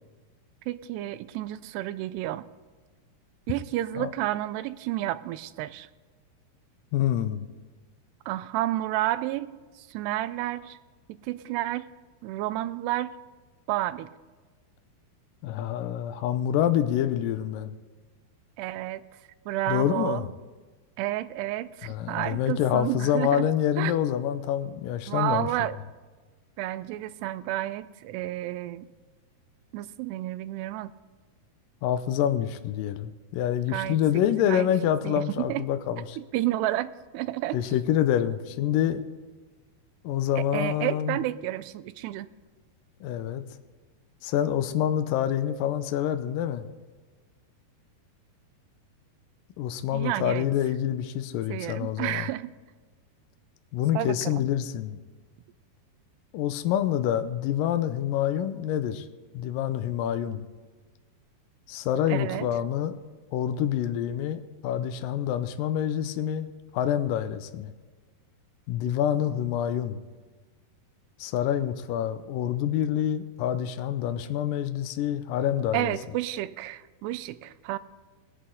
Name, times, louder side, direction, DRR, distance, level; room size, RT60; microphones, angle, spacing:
voice 1, 0.7-2.5 3.5-5.9 8.3-9.5 9.8-10.8 11.2-11.9 12.2-13.2 13.7-14.1 18.6-19.0 19.5-20.2 21.0-23.5 23.8-23.9 25.1-25.8 26.6-28.9 29.7-30.9 33.7-34.0 34.5-34.7 35.0-35.6 36.3-37.6 40.4-42.3 49.9-50.5 51.5-52.5 54.0-54.4 62.1-62.5 75.7-77.8, right 15 dB, 90° right, 14 dB, 2.7 m, -30 dB
voice 2, 6.9-7.5 15.4-17.8 19.7-20.3 21.8-25.7 31.8-36.2 37.5-39.1 40.0-41.2 43.0-43.4 44.2-46.7 49.6-52.3 53.7-55.0 56.3-59.1 59.3-60.4 61.7-63.0 63.3-67.7 68.7-70.0 71.2-75.9, left 10 dB, 80° left, 9 dB, 2.0 m, -27 dB
20.5 x 8.4 x 3.8 m, 1.4 s
omnidirectional pair, 4.7 m